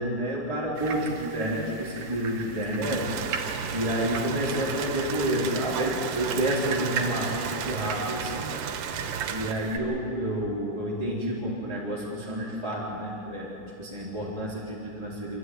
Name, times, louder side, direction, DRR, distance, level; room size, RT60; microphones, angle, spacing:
voice 1, 0.0-3.1 3.7-8.5 9.3-15.4, right 1 dB, 5° right, -7 dB, 3.0 m, -29 dB
sound 1, 0.7-9.8, right 5 dB, 60° right, 2.4 m, -38 dB
Rain, 2.8-9.5, right 7 dB, 80° right, 3.1 m, -34 dB
28.0 x 13.0 x 9.5 m, 2.7 s
omnidirectional pair, 4.5 m